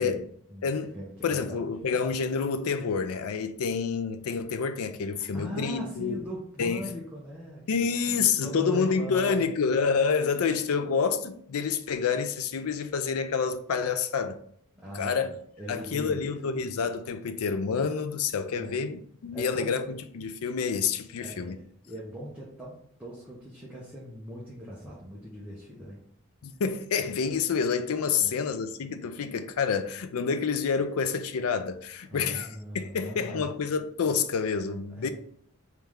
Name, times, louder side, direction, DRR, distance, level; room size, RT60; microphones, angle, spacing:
voice 1, 0.0-2.0 5.2-9.5 14.7-15.3 15.6-16.2 18.5-18.9 19.3-19.8 21.2-26.0 28.1-28.4 32.0-33.5 34.9-35.1, equal, 5° right, 0.7 m, -40 dB
voice 2, 0.6-0.9 1.2-6.2 6.6-6.8 7.7-14.4 14.9-15.3 15.7-21.6 26.4-35.1, left 5 dB, 75° left, 0.4 m, -28 dB
3.4 x 3.2 x 3.5 m
head